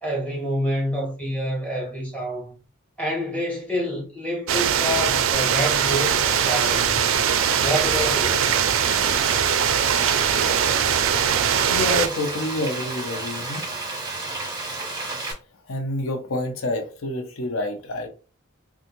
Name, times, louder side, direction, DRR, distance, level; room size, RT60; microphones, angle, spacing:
voice 1, 0.0-2.5 3.0-7.2 7.6-8.6, equal, 5° left, 1.2 m, -28 dB
sound 1, 4.5-12.1, right 8 dB, 70° right, 0.3 m, -21 dB
Frying (food), 5.3-15.3, right 2 dB, 20° right, 0.8 m, -32 dB
voice 2, 11.7-13.7 15.7-18.1, left 1 dB, 80° left, 0.6 m, -28 dB
3.4 x 2.4 x 2.8 m
head